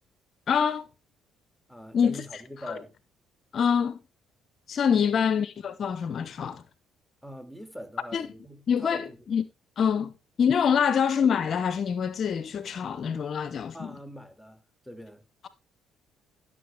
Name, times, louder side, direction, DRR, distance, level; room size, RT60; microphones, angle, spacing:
voice 1, 0.5-0.9 1.9-2.2 2.6-2.8 3.5-4.0 4.7-6.6 8.1-8.3 8.7-9.4 9.8-10.1 10.4-13.9, left 7 dB, 50° left, 0.7 m, -25 dB
voice 2, 1.7-2.9 4.9-5.1 7.2-9.2 10.0-10.1 10.7-10.9 13.7-15.2, equal, ahead, 2.3 m, -43 dB
12.5 x 6.7 x 3.5 m
hypercardioid pair, 50°, 0 cm